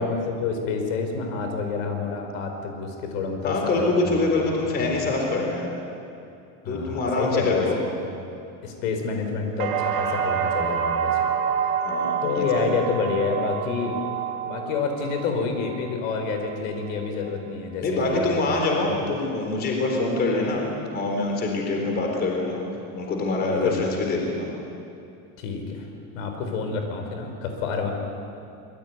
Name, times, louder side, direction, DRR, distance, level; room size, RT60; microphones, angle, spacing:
voice 1, 0.0-4.4 4.8-5.0 6.6-7.7 8.6-11.2 12.2-14.0 14.4-18.6 23.4-23.9 25.4-25.9 26.1-27.9, left 4 dB, 70° left, 4 dB, 4.9 m, -28 dB
voice 2, 3.4-5.7 6.7-7.8 11.8-12.6 17.8-20.6 20.9-22.6 22.9-24.5, left 2 dB, 25° left, 1 dB, 4.0 m, -25 dB
sound 1, 9.6-17.5 17.9-18.5, right 7 dB, 80° right, 5.1 m, -28 dB
25.5 x 22.5 x 9.5 m, 2.6 s
supercardioid pair, 175°, 41 cm